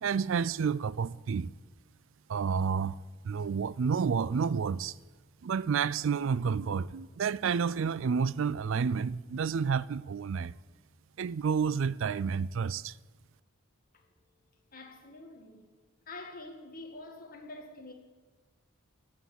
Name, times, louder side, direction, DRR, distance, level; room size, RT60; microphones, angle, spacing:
voice 1, 0.0-1.5 2.3-5.0 5.4-10.5 11.2-13.0, right 6 dB, 60° right, 0.4 m, -30 dB
voice 2, 14.7-15.7 16.1-17.9, left 2 dB, 40° left, 1.9 m, -46 dB
15.0 x 8.6 x 7.8 m
head